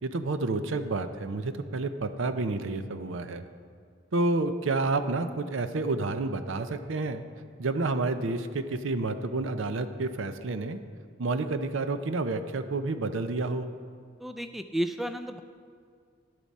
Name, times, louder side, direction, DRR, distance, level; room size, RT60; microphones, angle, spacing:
voice 1, 0.0-3.4 4.1-7.2 7.6-10.8 11.2-13.7, right 3 dB, 70° right, 10 dB, 0.6 m, -29 dB
voice 2, 14.2-15.4, right 1 dB, ahead, 8 dB, 0.3 m, -32 dB
11.5 x 10.5 x 4.2 m, 2.1 s
head